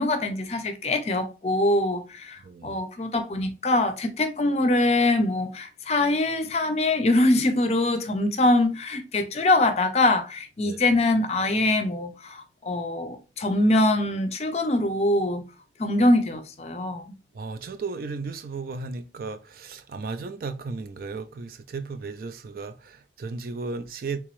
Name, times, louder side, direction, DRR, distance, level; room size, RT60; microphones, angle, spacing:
voice 1, 0.0-15.4 15.8-17.0, left 2 dB, 35° left, 0.5 m, -23 dB
voice 2, 2.4-2.8 10.6-10.8 17.3-24.2, right 4 dB, 50° right, 0.4 m, -35 dB
3.5 x 2.9 x 3.0 m
head